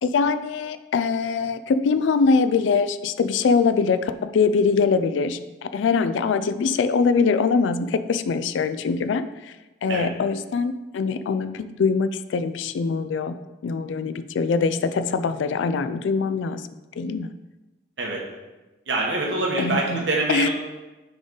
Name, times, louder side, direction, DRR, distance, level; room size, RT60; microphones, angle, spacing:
voice 1, 0.0-9.5 9.8-13.4 13.6-16.7 17.0-17.3 19.6-20.0 20.3-20.5, left 5 dB, 80° left, 12 dB, 0.3 m, -23 dB
voice 2, 18.9-20.5, right 2 dB, 75° right, -2 dB, 1.2 m, -25 dB
9.5 x 3.8 x 3.9 m, 1.1 s
head